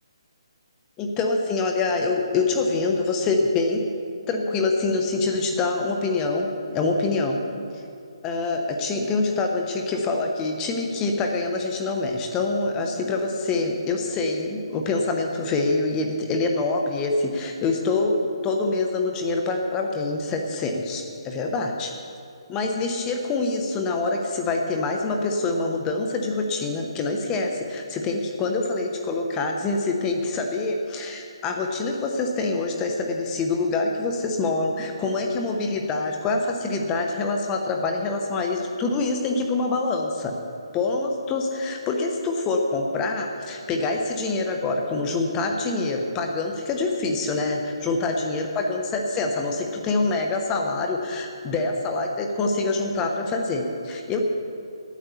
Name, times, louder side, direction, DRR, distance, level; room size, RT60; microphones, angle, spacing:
voice 1, 1.0-3.8 4.3-7.5 8.2-18.2 18.4-21.9 22.5-40.3 40.7-54.2, left 3 dB, 15° left, 2 dB, 0.8 m, -25 dB
11.0 x 9.1 x 7.0 m, 2.4 s
hypercardioid pair, 165°, 3 cm